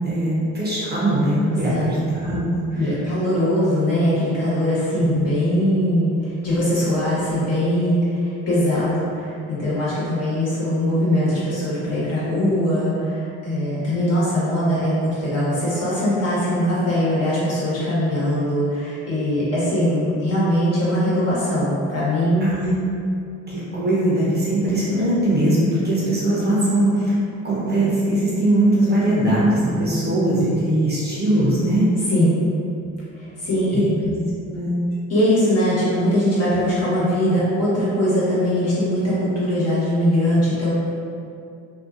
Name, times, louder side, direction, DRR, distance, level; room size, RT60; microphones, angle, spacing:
voice 1, 0.0-3.0 5.0-5.3 22.4-22.7 23.5-27.2 27.4-31.9 33.7-34.2 34.4-34.8, right 1 dB, 30° right, -8 dB, 0.8 m, -21 dB
voice 2, 1.5-1.9 2.8-22.5 32.1-32.4 33.2-33.8 35.1-40.8, equal, 45° left, -9 dB, 1.2 m, -21 dB
2.7 x 2.3 x 2.4 m, 2.5 s
supercardioid pair, 85°, 34 cm